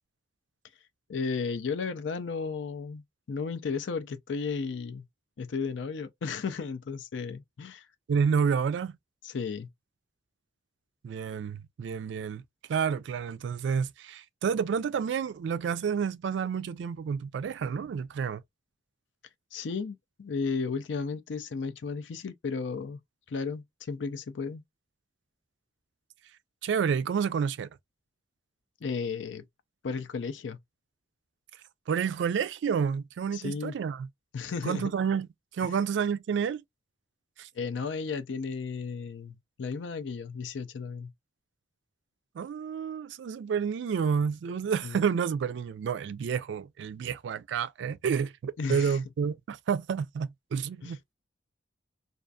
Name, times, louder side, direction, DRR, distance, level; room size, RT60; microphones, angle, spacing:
voice 1, 1.1-3.0 3.3-5.1 5.4-7.8 9.2-9.7 19.5-23.0 23.3-24.6 28.8-29.5 29.8-30.6 33.3-33.8 34.3-34.9 37.6-41.1 44.8-45.0 48.6-49.0 50.8-50.9, left 5 dB, 80° left, 0.4 m, -34 dB
voice 2, 8.1-9.0 11.0-12.4 12.7-18.4 26.6-27.7 31.9-34.1 34.6-35.3 35.5-36.6 37.4-37.5 42.3-51.1, right 6 dB, 75° right, 0.3 m, -29 dB
2.5 x 2.4 x 2.2 m
head